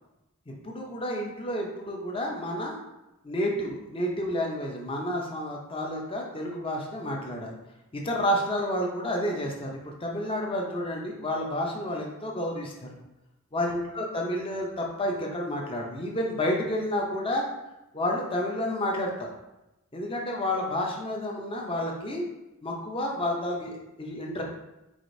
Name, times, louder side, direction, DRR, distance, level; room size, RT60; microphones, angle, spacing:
voice 1, 0.5-2.8 3.2-7.5 7.9-12.9 13.5-17.5 17.9-19.3 19.9-22.2 22.6-24.4, left 1 dB, 25° left, 0 dB, 0.6 m, -30 dB
4.9 x 3.9 x 2.6 m, 0.93 s
head